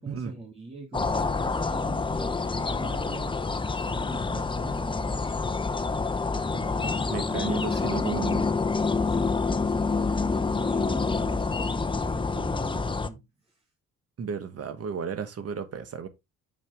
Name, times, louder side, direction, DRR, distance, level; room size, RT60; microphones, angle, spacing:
voice 1, 0.0-5.2 6.5-7.6 8.9-13.6, right 2 dB, 20° right, 2.2 m, -42 dB
sound 1, 0.9-13.1, left 4 dB, 15° left, 0.7 m, -27 dB
voice 2, 7.1-8.5 14.2-16.1, right 6 dB, 50° right, 1.5 m, -33 dB
7.0 x 5.8 x 3.4 m
cardioid pair, 90°, 30 cm